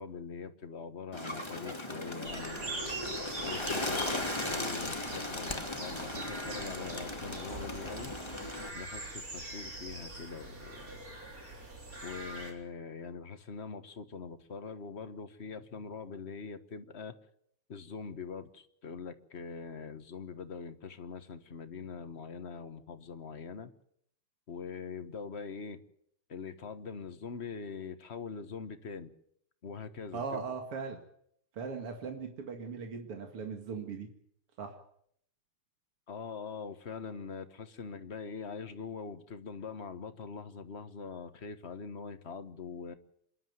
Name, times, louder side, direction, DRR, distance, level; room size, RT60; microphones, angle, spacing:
voice 1, 0.0-2.8 3.4-8.1 8.7-11.0 12.0-17.1 17.7-23.7 24.5-25.8 26.3-29.1 29.6-30.4 36.1-42.9, left 5 dB, 35° left, 1.3 m, -43 dB
Bird, 1.1-8.7, left 1 dB, 15° left, 1.8 m, -37 dB
sound 1, 2.2-12.5, right 2 dB, 40° right, 4.3 m, -43 dB
voice 2, 30.1-31.0 31.5-34.1 34.6-34.8, right 5 dB, 90° right, 3.0 m, -39 dB
26.5 x 12.0 x 9.5 m
omnidirectional pair, 2.4 m